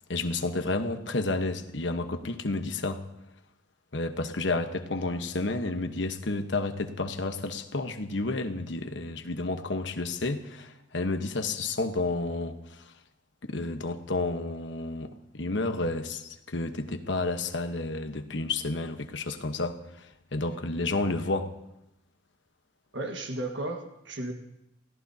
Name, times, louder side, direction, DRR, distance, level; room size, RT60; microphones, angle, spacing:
voice 1, 0.1-3.0 3.9-12.6 13.4-21.5, left 2 dB, 65° left, 1.1 m, -31 dB
voice 2, 22.9-24.3, right 2 dB, 70° right, 1.5 m, -34 dB
29.0 x 17.0 x 2.8 m
head